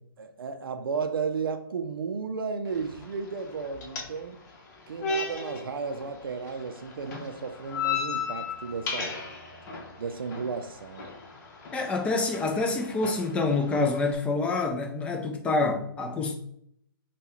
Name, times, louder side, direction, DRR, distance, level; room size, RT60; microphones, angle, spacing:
voice 1, 0.2-4.4 4.9-9.2 10.0-11.1, right 5 dB, 70° right, 0.4 m, -34 dB
sound 1, 2.7-14.1, left 5 dB, 45° left, 0.9 m, -37 dB
voice 2, 11.7-16.3, left 3 dB, 10° left, 0.4 m, -27 dB
5.3 x 2.3 x 3.0 m
figure-of-eight pair, 130°, 12 cm